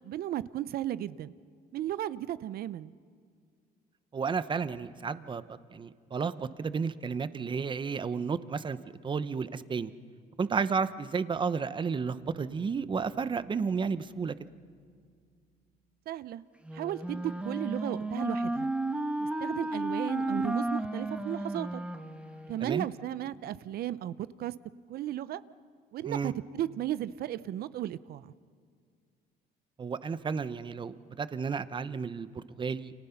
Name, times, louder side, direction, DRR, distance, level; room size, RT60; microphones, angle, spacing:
voice 1, 0.0-1.3 1.7-2.9 16.1-16.4 16.7-18.7 19.4-21.8 22.5-24.5 24.9-25.4 25.9-28.3, right 12 dB, 65° right, 16 dB, 0.8 m, -35 dB
voice 2, 4.1-5.4 5.7-8.8 9.0-9.9 10.4-14.3 22.6-22.9 26.0-26.3 29.8-32.9, right 5 dB, 30° right, 14 dB, 0.9 m, -32 dB
Bass guitar, 12.2-15.9, right 2 dB, 90° right, 7.0 m, -58 dB
Wind instrument woodwind instrument, 16.6-22.8, right 1 dB, 5° right, 1.5 m, -33 dB
30.0 x 27.0 x 5.8 m, 2.1 s
cardioid pair, 110°, 17 cm